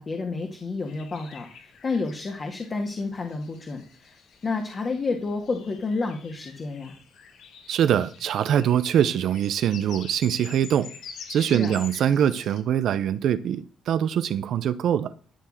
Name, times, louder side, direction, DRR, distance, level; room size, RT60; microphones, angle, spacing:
voice 1, 0.0-7.0 11.3-11.7, left 3 dB, 40° left, 2.1 m, -30 dB
sound 1, 0.9-12.6, left 6 dB, 75° left, 2.0 m, -46 dB
voice 2, 7.7-10.9 11.3-15.1, right 9 dB, 70° right, 0.6 m, -23 dB
13.0 x 4.7 x 7.5 m
cardioid pair, 90°, 0 cm